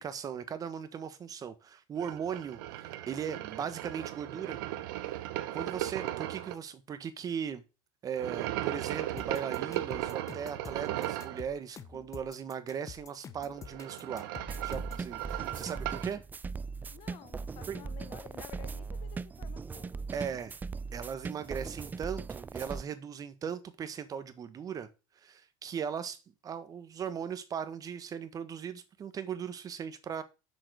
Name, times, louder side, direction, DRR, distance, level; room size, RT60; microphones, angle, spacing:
voice 1, 0.0-4.6 5.5-7.6 8.0-14.3 14.6-16.2 17.7-17.8 20.1-20.5 20.9-24.9 25.2-30.2, right 7 dB, 30° right, 1.4 m, -38 dB
sound 1, 2.0-6.5 8.2-11.4 13.5-16.1, right 15 dB, 80° right, 1.0 m, -37 dB
sound 2, 9.2-15.1, left 6 dB, 30° left, 0.9 m, -48 dB
sound 3, 14.5-22.8, right 4 dB, 15° right, 0.3 m, -39 dB
voice 2, 16.9-19.9, left 12 dB, 55° left, 1.3 m, -52 dB
6.7 x 5.9 x 6.3 m
supercardioid pair, 115°, 11 cm